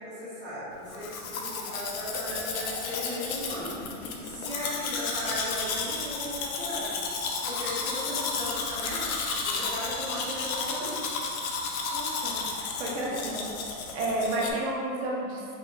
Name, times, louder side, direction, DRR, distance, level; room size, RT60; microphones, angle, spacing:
voice 1, 0.0-3.7 4.2-9.1 9.4-11.0 12.8-13.3, equal, 10° left, -17 dB, 0.4 m, -37 dB
Domestic sounds home sounds, 0.9-14.5, left 4 dB, 70° left, 0.6 m, -33 dB
voice 2, 11.9-13.4 13.9-15.6, right 1 dB, 50° right, -3 dB, 0.7 m, -32 dB
5.4 x 2.2 x 2.6 m, 2.4 s
supercardioid pair, 170°, 44 cm